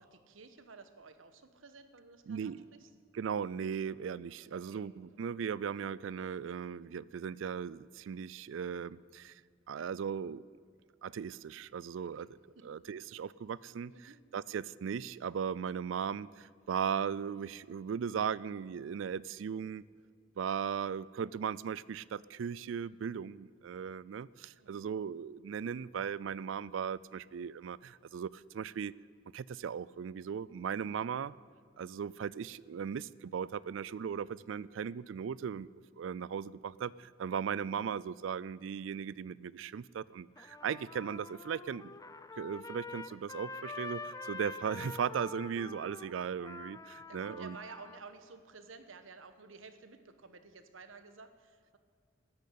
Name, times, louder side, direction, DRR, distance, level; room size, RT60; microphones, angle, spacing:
voice 1, 0.0-2.9 4.5-5.3 12.1-12.3 12.5-12.7 13.9-14.2 24.6-24.8 47.1-51.8, right 4 dB, 90° right, 10 dB, 1.3 m, -53 dB
voice 2, 2.3-2.6 3.1-9.3 9.7-10.4 11.0-12.4 12.6-13.9 14.3-19.9 20.4-28.9 29.3-31.3 31.8-35.7 36.0-41.9 42.4-47.6, right 7 dB, 70° right, 20 dB, 0.4 m, -37 dB
Trumpet, 40.4-48.0, left 3 dB, 20° left, 0.5 m, -46 dB
13.5 x 10.5 x 8.5 m, 2.1 s
head